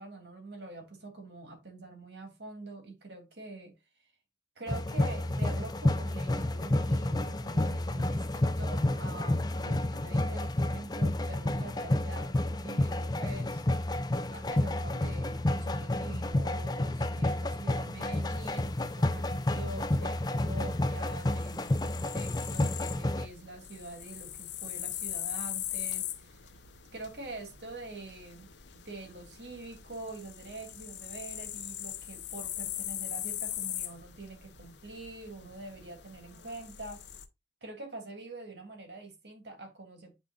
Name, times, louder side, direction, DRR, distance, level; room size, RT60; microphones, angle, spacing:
voice 1, 0.0-3.8 4.6-13.6 14.3-26.5 26.9-37.0 37.6-40.2, right 2 dB, 75° right, 2.9 m, -45 dB
sound 1, 4.7-23.3, left 1 dB, 20° left, 0.6 m, -30 dB
sound 2, 18.3-37.3, left 12 dB, 85° left, 0.9 m, -41 dB
8.7 x 5.5 x 2.4 m
head